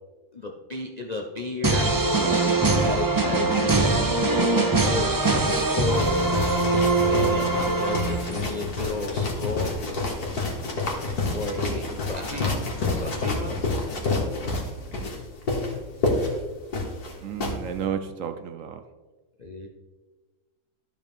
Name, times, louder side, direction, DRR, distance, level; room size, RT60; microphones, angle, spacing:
voice 1, 0.3-6.1 7.0-9.9 11.3-13.7 14.4-14.5 19.4-19.7, left 2 dB, 50° left, 2 dB, 0.4 m, -34 dB
sound 1, 1.6-8.6, right 3 dB, 25° right, 0.4 m, -22 dB
sound 2, 5.9-17.6, left 3 dB, 75° left, 2.1 m, -28 dB
voice 2, 17.2-18.8, right 8 dB, 65° right, 8 dB, 0.9 m, -32 dB
12.5 x 5.8 x 3.5 m, 1.2 s
omnidirectional pair, 1.7 m